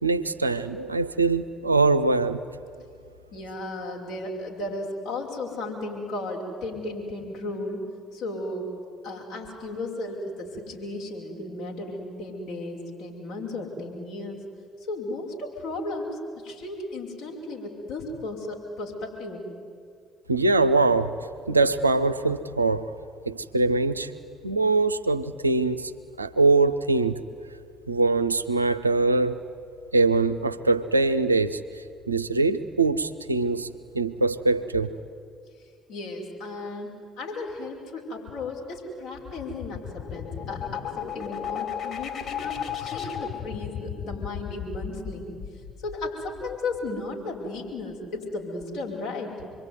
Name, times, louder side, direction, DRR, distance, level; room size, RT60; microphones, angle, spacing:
voice 1, 0.0-2.4 20.3-22.9 23.3-24.1 24.4-25.9 26.2-27.2 27.9-29.4 29.9-33.7 33.9-34.9, right 3 dB, 90° right, 11 dB, 0.7 m, -23 dB
voice 2, 3.3-7.8 8.1-8.7 9.0-14.4 14.9-19.5 35.6-45.3 45.8-49.3, left 2 dB, 65° left, -2 dB, 5.8 m, -35 dB
sound 1, 39.1-46.8, left 8 dB, 45° left, 4.5 m, -35 dB
26.0 x 23.0 x 9.8 m, 2.3 s
figure-of-eight pair, 50°, 0 cm